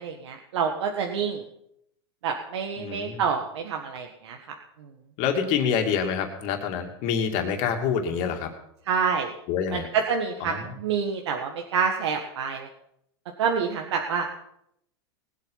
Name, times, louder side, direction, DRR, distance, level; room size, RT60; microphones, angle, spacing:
voice 1, 0.0-1.4 2.2-4.6 8.9-9.3 9.7-12.7 13.4-14.3, right 6 dB, 80° right, 2 dB, 1.6 m, -27 dB
voice 2, 2.8-3.2 5.2-8.5 9.5-9.9 10.5-10.6, left 7 dB, 45° left, 4 dB, 2.7 m, -26 dB
20.0 x 8.3 x 5.7 m, 0.74 s
supercardioid pair, 130°, 14 cm